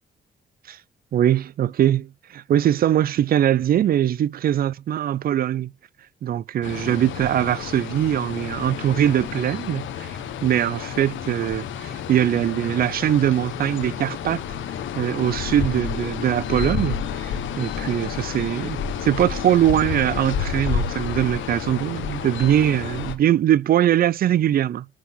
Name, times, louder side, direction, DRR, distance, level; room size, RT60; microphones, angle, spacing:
voice 1, 1.1-5.7 6.2-14.4 15.0-24.9, right 11 dB, 50° right, 0.4 m, -22 dB
sound 1, 6.6-23.1, left 7 dB, 75° left, 1.1 m, -30 dB
6.2 x 5.5 x 3.6 m
cardioid pair, 90°, 20 cm